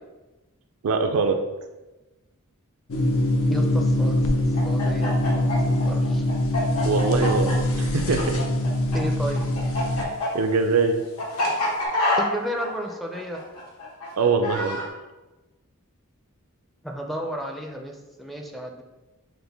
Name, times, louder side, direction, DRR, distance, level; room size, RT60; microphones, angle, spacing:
voice 1, 0.8-1.4 6.8-8.4 9.9-11.0 14.1-14.8, right 4 dB, 70° right, 6 dB, 0.4 m, -23 dB
sound 1, 2.9-10.0, left 1 dB, 65° left, 0.5 m, -23 dB
voice 2, 3.5-4.2 4.6-6.2 8.9-9.5 12.2-13.4 16.8-18.8, equal, ahead, 0 dB, 0.4 m, -33 dB
Chicken rooster, 4.5-9.0 9.2-14.9, left 2 dB, 85° left, 1.4 m, -27 dB
5.9 x 2.1 x 3.4 m, 1.1 s
head